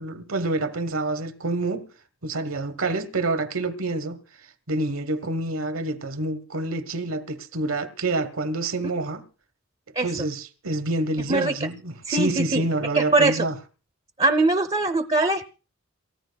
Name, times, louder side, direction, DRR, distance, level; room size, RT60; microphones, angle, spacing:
voice 1, 0.0-1.9 2.2-4.2 4.7-9.2 10.0-13.5, right 2 dB, 85° right, 1.3 m, -27 dB
voice 2, 10.0-10.3 11.3-11.7 12.1-12.6 12.9-13.5 14.2-15.5, right 2 dB, 30° right, 0.7 m, -22 dB
28.5 x 14.5 x 2.3 m
head